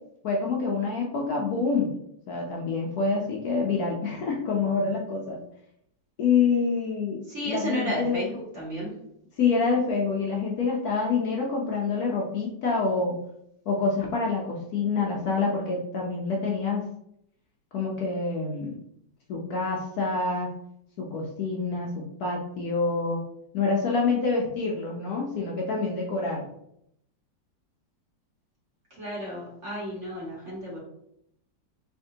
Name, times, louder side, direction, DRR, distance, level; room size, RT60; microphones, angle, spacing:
voice 1, 0.2-1.9 2.3-5.4 6.2-8.3 9.4-13.1 13.7-16.8 17.7-18.8 19.3-20.5 21.0-23.2 23.5-26.5, left 4 dB, 65° left, -2 dB, 1.0 m, -27 dB
voice 2, 7.3-9.0 28.9-30.8, equal, 45° right, -6 dB, 1.5 m, -33 dB
3.5 x 3.4 x 2.7 m, 0.74 s
omnidirectional pair, 1.9 m